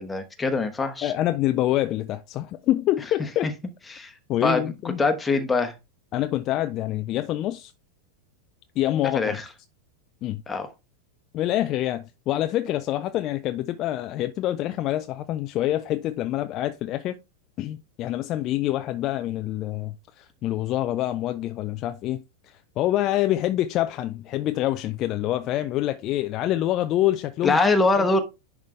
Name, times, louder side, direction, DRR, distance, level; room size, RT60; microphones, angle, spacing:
voice 1, 0.0-1.1 3.9-4.1 4.4-4.7 5.0-5.7 9.1-9.4 10.5-10.7 27.4-28.2, left 3 dB, 10° left, 1.2 m, -23 dB
voice 2, 1.0-3.5 4.3-5.0 6.1-7.7 8.8-9.4 10.2-10.4 11.3-17.2 17.6-27.6 28.0-28.1, left 14 dB, 35° left, 0.4 m, -26 dB
10.5 x 3.7 x 3.3 m
figure-of-eight pair, 90°, 0 cm